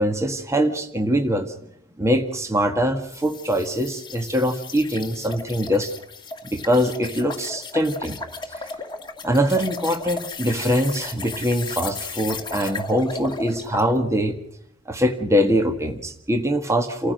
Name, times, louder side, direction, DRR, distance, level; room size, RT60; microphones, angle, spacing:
voice 1, 0.0-1.6 2.0-5.9 6.5-8.2 8.5-8.7 9.2-14.3 14.9-17.1, equal, 15° right, 6 dB, 1.6 m, -23 dB
sound 1, 3.1-13.9, left 4 dB, 20° left, 2.0 m, -35 dB
29.5 x 15.0 x 6.5 m, 0.73 s
head